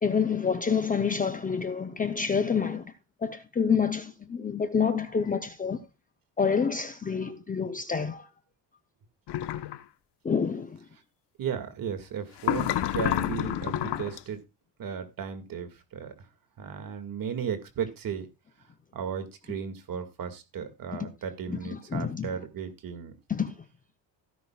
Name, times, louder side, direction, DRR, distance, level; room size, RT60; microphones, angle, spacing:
voice 1, 0.0-2.8 3.2-5.8 6.4-8.2 10.2-10.7 20.9-21.1 21.6-22.3 23.3-23.5, left 6 dB, 20° left, 0.7 m, -27 dB
sound 1, 9.3-9.8 12.4-14.2, left 13 dB, 75° left, 1.1 m, -29 dB
voice 2, 11.4-14.4 14.8-16.1 16.6-18.3 18.9-23.1, right 7 dB, 55° right, 2.1 m, -35 dB
16.5 x 10.5 x 2.4 m
cardioid pair, 150°, 41 cm